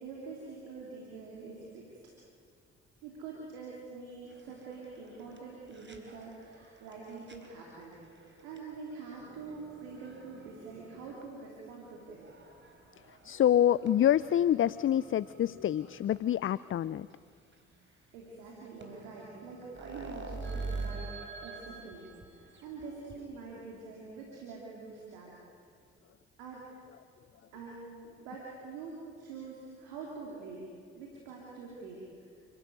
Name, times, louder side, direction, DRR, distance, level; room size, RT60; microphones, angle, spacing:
voice 1, 0.0-2.0 3.0-12.3 17.7-21.1 21.4-25.3 26.4-26.7 27.5-30.6 30.9-32.3, right 4 dB, 80° right, -3 dB, 3.1 m, -45 dB
sound 1, 4.3-16.2 16.8-16.9 17.1-17.2 17.5-17.6 18.5-18.6 18.8-23.3, right 3 dB, 35° right, 4.2 m, -47 dB
voice 2, 13.2-17.1, left 11 dB, 40° left, 18 dB, 0.5 m, -26 dB
29.0 x 13.0 x 9.4 m, 2.2 s
hypercardioid pair, 45°, 33 cm